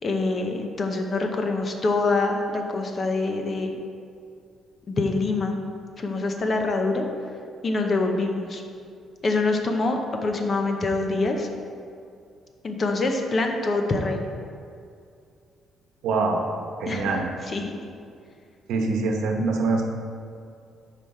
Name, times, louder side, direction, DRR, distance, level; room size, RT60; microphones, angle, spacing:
voice 1, 0.0-3.8 4.9-5.6 6.0-7.4 7.6-8.6 9.2-11.5 12.6-14.2 16.9-17.8, left 3 dB, 25° left, 4 dB, 0.6 m, -25 dB
voice 2, 16.0-16.5 16.8-17.3 18.7-19.8, right 3 dB, 90° right, 3 dB, 0.9 m, -24 dB
9.3 x 5.0 x 4.3 m, 2.4 s
cardioid pair, 180°, 0 cm